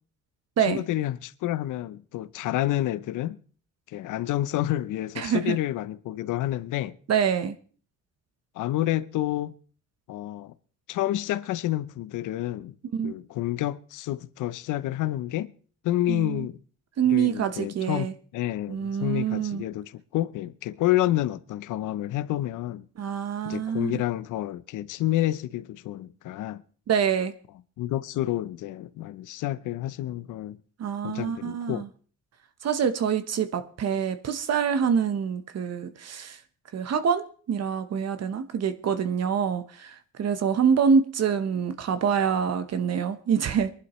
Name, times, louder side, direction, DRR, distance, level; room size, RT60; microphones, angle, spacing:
voice 1, 0.7-3.4 3.9-7.0 8.6-9.5 10.1-10.5 10.9-12.7 13.0-15.5 15.8-16.6 17.1-22.9 23.4-26.6 27.8-30.6 31.0-31.9, left 14 dB, 85° left, 0.7 m, -29 dB
voice 2, 5.2-5.6 7.1-7.5 12.9-13.1 16.1-16.5 17.0-18.1 18.7-19.6 23.0-24.0 26.9-27.3 30.8-31.9 32.6-36.4 36.7-43.7, right 7 dB, 55° right, 1.0 m, -26 dB
22.5 x 11.5 x 3.1 m
cardioid pair, 90°, 30 cm